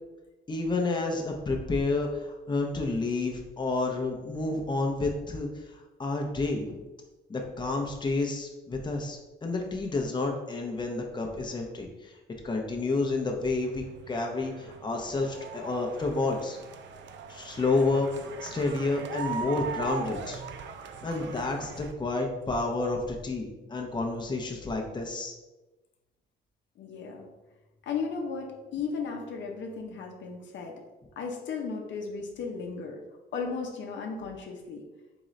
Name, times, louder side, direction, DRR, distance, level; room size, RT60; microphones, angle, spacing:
voice 1, 0.5-6.8 7.3-12.2 12.4-16.6 17.3-18.1 18.4-20.4 21.0-25.3, left 3 dB, 20° left, 2 dB, 0.7 m, -30 dB
sound 1, 13.6-21.9, right 5 dB, 70° right, 0.5 m, -40 dB
voice 2, 26.8-27.3 27.9-30.8 31.2-33.0 33.3-34.8, left 5 dB, 70° left, 1 dB, 0.8 m, -35 dB
3.8 x 3.8 x 3.1 m, 1.1 s
cardioid pair, 90°, 20 cm